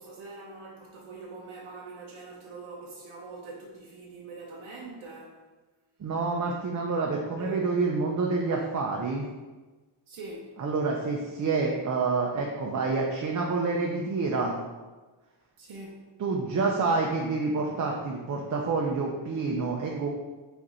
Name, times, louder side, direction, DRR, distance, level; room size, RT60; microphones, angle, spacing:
voice 1, 0.0-5.4 7.4-7.7 10.1-10.6 15.6-16.1, right 3 dB, 80° right, -2 dB, 0.7 m, -43 dB
voice 2, 6.0-9.2 10.6-14.6 16.2-20.1, right 4 dB, 40° right, 0 dB, 0.4 m, -28 dB
5.0 x 2.5 x 4.2 m, 1.2 s
wide cardioid pair, 140°, 48 cm